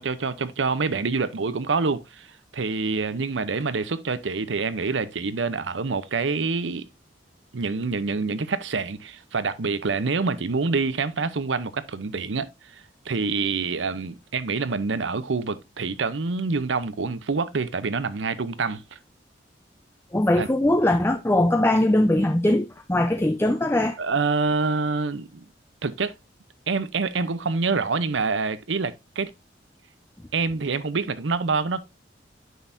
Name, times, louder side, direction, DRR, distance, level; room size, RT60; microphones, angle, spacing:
voice 1, 0.0-2.3 2.5-6.9 7.5-19.0 20.4-20.5 24.0-25.4 25.8-26.1 26.7-29.3 30.3-31.8, right 4 dB, 90° right, 0.7 m, -26 dB
voice 2, 20.1-24.0, left 1 dB, 15° left, 0.5 m, -21 dB
9.2 x 6.3 x 2.6 m
head